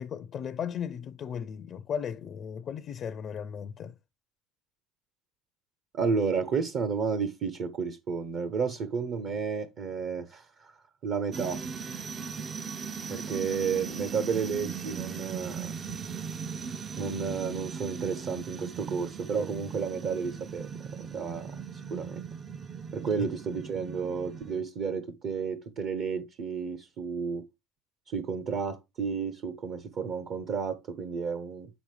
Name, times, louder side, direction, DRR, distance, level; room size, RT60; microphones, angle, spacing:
voice 1, 0.0-4.0 23.2-23.3, left 7 dB, 45° left, 0.4 m, -36 dB
voice 2, 5.9-10.8 11.0-11.6 13.1-15.7 17.0-22.2 22.9-27.4 28.1-31.7, right 6 dB, 50° right, 0.8 m, -32 dB
sound 1, 11.3-24.6, right 6 dB, 30° right, 0.4 m, -39 dB
6.8 x 6.2 x 3.3 m
supercardioid pair, 100°, 0 cm